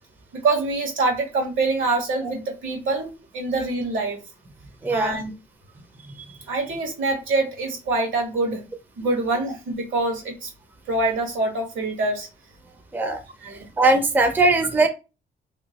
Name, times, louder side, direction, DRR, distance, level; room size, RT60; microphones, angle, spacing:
voice 1, 0.3-4.2 4.9-5.3 6.5-8.6 9.0-10.5 10.9-12.3 13.4-13.6, right 3 dB, 75° right, 1 dB, 1.3 m, -25 dB
voice 2, 4.8-5.2 12.9-13.2 13.5-14.9, right 2 dB, 10° right, 6 dB, 0.5 m, -20 dB
2.9 x 2.3 x 2.8 m, 0.29 s
cardioid pair, 90°, 20 cm